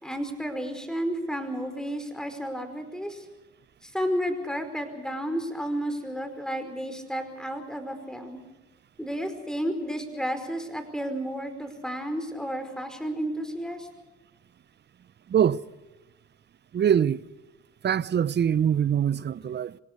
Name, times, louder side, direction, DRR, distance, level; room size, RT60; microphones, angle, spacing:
voice 1, 0.0-3.3 3.8-8.4 9.0-13.9, equal, ahead, 4.9 m, -32 dB
voice 2, 15.3-15.6 16.7-17.2 17.8-19.8, right 9 dB, 35° right, 0.7 m, -23 dB
26.0 x 17.5 x 6.7 m
supercardioid pair, 70°, 30 cm